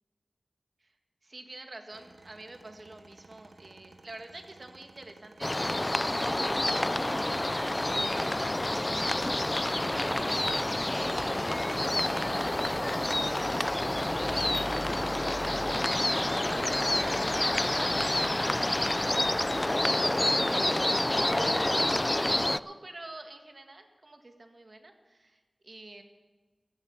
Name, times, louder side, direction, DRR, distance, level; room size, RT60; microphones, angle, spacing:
voice 1, 1.2-8.7 9.1-15.4 15.7-19.4 20.0-20.9 21.3-26.0, right 2 dB, 55° right, 5 dB, 1.7 m, -48 dB
sound 1, 1.9-18.5, right 3 dB, 75° right, 0.9 m, -54 dB
sound 2, 5.4-22.6, left 1 dB, 25° left, 0.4 m, -28 dB
sound 3, 8.9-19.7, right 1 dB, 25° right, 0.9 m, -46 dB
14.5 x 7.5 x 9.2 m, 1.3 s
wide cardioid pair, 55°, 0 cm